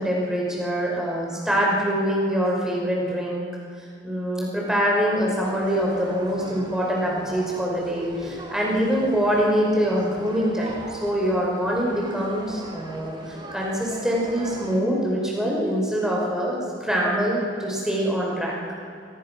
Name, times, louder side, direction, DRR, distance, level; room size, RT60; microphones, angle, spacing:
voice 1, 0.0-3.5 4.0-18.5, equal, 5° right, -3 dB, 5.4 m, -24 dB
sound 1, 5.4-14.8, right 1 dB, 25° right, 3.2 m, -40 dB
24.5 x 20.0 x 6.3 m, 2.6 s
head